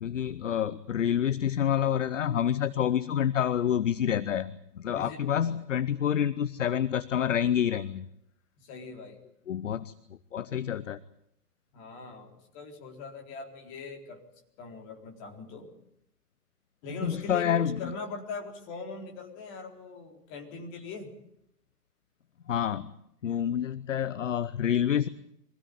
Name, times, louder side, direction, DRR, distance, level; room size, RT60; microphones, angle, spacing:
voice 1, 0.0-8.1 9.5-9.9 10.3-11.0 17.0-17.9 22.5-22.9 23.2-25.1, left 9 dB, 50° left, 17 dB, 0.9 m, -28 dB
voice 2, 4.9-5.6 8.6-9.2 11.7-14.2 14.6-15.7 16.8-21.1, left 4 dB, 25° left, 3 dB, 4.1 m, -41 dB
24.0 x 16.0 x 9.5 m, 0.78 s
figure-of-eight pair, 125°, 48 cm